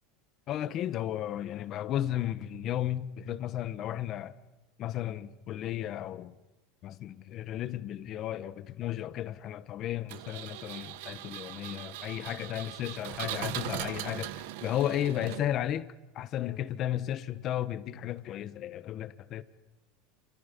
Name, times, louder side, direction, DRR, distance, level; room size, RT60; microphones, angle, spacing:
voice 1, 0.5-4.3 4.8-6.4 6.8-19.4, left 12 dB, 40° left, 1.2 m, -34 dB
Engine, 10.1-15.8, right 15 dB, 70° right, 1.1 m, -40 dB
29.0 x 28.0 x 5.4 m
supercardioid pair, 145°, 0 cm